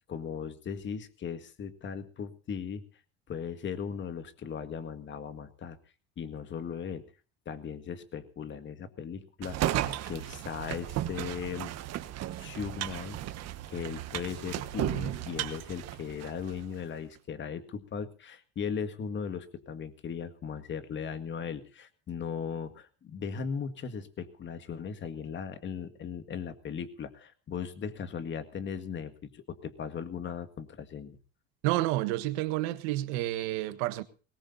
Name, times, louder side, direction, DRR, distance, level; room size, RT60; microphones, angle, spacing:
voice 1, 0.1-2.8 3.3-5.8 6.2-7.0 7.5-11.7 12.4-13.2 13.7-31.2, left 7 dB, 40° left, 1.9 m, -38 dB
sound 1, 9.4-16.6, right 12 dB, 55° right, 1.4 m, -35 dB
voice 2, 31.6-34.0, right 16 dB, 80° right, 1.4 m, -30 dB
20.5 x 18.5 x 2.7 m
supercardioid pair, 105°, 31 cm